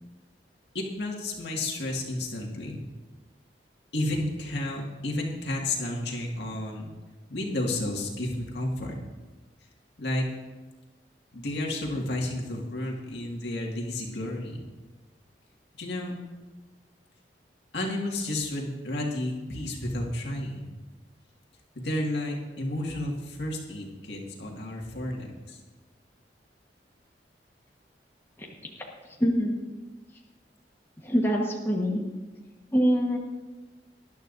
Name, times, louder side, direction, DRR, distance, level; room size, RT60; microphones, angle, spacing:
voice 1, 0.7-2.9 3.9-6.9 7.3-9.0 10.0-10.3 11.3-14.6 15.8-16.2 17.7-20.7 21.8-25.6, left 1 dB, 70° left, -1 dB, 2.1 m, -31 dB
voice 2, 29.2-29.6 31.0-32.0 32.7-33.2, equal, 15° left, -2 dB, 1.4 m, -24 dB
19.5 x 11.5 x 2.7 m, 1.2 s
head